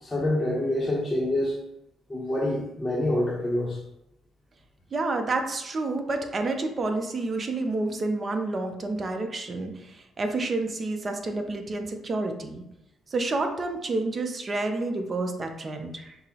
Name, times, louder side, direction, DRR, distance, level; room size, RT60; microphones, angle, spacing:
voice 1, 0.0-1.6 2.1-3.8, left 1 dB, 20° left, -5 dB, 0.7 m, -26 dB
voice 2, 4.9-12.6 13.1-16.2, right 2 dB, 40° right, 5 dB, 0.5 m, -29 dB
5.6 x 2.0 x 2.8 m, 0.87 s
cardioid pair, 90°, 0 cm